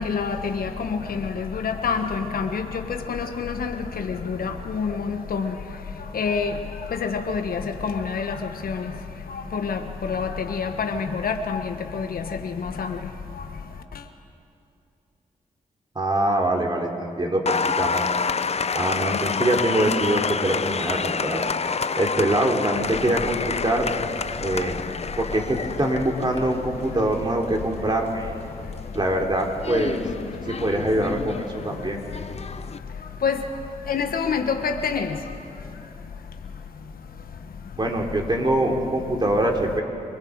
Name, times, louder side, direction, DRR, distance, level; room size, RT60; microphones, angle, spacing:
voice 1, 0.0-2.6 3.1-3.7 4.1-5.5 6.1-6.5 7.0-8.4 8.6-8.9 9.5-13.0 33.2-33.4 33.9-35.1, left 5 dB, 75° left, 6 dB, 1.2 m, -27 dB
voice 2, 15.9-18.1 18.7-23.9 24.4-24.8 25.2-28.4 28.9-30.0 30.5-32.0 37.8-39.8, right 1 dB, 30° right, 1 dB, 3.3 m, -24 dB
Applause, 17.5-32.8, left 5 dB, 45° left, 0.7 m, -29 dB
27.0 x 20.0 x 4.8 m, 2.7 s
cardioid pair, 50°, 15 cm